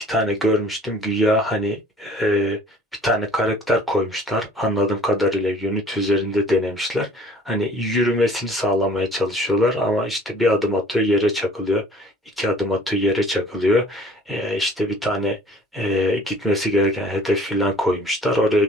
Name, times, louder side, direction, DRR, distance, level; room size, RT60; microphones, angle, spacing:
voice 1, 0.0-2.6 3.0-12.1 12.4-18.6, left 1 dB, ahead, 0.9 m, -22 dB
3.3 x 2.1 x 2.9 m
figure-of-eight pair, 90°, 0 cm